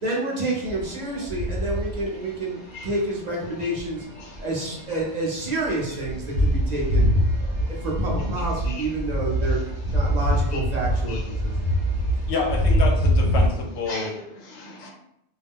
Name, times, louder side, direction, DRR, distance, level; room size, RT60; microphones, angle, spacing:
voice 1, 0.0-4.1 4.4-7.1 7.6-11.5, right 2 dB, 45° right, -3 dB, 0.7 m, -28 dB
sound 1, 0.7-2.3 2.9-3.1 3.8-4.4 4.7-4.8 5.0-5.1 5.3-13.5, equal, 90° right, 0.9 m, -24 dB
voice 2, 7.4-7.7 8.6-8.8 10.5-10.6 11.1-12.3 13.9-14.9, left 3 dB, 50° left, -2 dB, 0.8 m, -41 dB
voice 3, 12.3-14.2 14.8-14.9, left 4 dB, 75° left, 1 dB, 0.9 m, -28 dB
2.3 x 2.1 x 3.4 m, 0.78 s
omnidirectional pair, 1.1 m